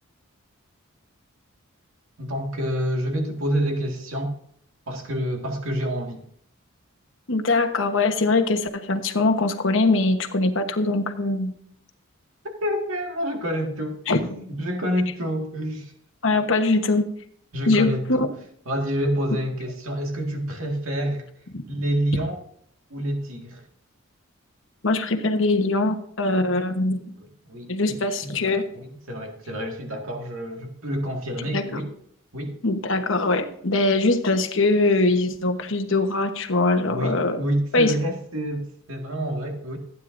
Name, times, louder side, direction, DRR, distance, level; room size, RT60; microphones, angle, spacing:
voice 1, 2.2-4.4 4.9-6.2 12.6-15.9 17.5-18.3 18.7-21.3 21.7-22.4 22.9-23.6 27.5-31.9 32.3-32.6 36.8-39.8, equal, 75° right, 2 dB, 1.9 m, -28 dB
voice 2, 7.3-11.6 14.1-14.3 16.2-17.1 17.7-18.3 21.5-21.6 24.8-27.1 27.7-28.6 31.5-31.8 32.6-37.4 37.7-37.9, left 2 dB, 65° left, 5 dB, 1.1 m, -22 dB
16.0 x 9.4 x 2.6 m, 0.65 s
head